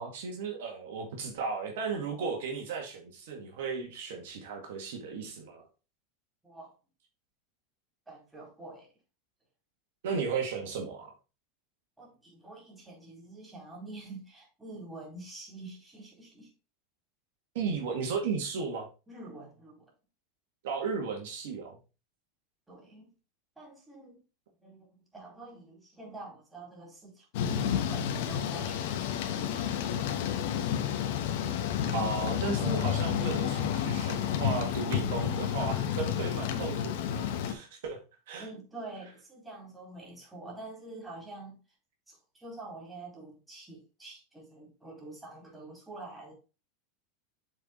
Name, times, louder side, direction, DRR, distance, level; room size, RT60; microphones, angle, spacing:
voice 1, 0.0-5.6 10.0-11.1 17.5-18.9 20.6-21.8 31.9-38.0 38.3-38.5, right 5 dB, 75° right, 1.9 m, -35 dB
voice 2, 8.1-8.9 12.0-16.5 19.1-19.9 22.7-23.1 23.6-24.2 24.6-30.7 34.0-34.3 38.4-41.5 42.1-46.3, right 2 dB, 10° right, 4.0 m, -47 dB
Thunder / Rain, 27.3-37.5, left 9 dB, 70° left, 1.1 m, -30 dB
7.5 x 4.7 x 3.7 m
hypercardioid pair, 110°, 0 cm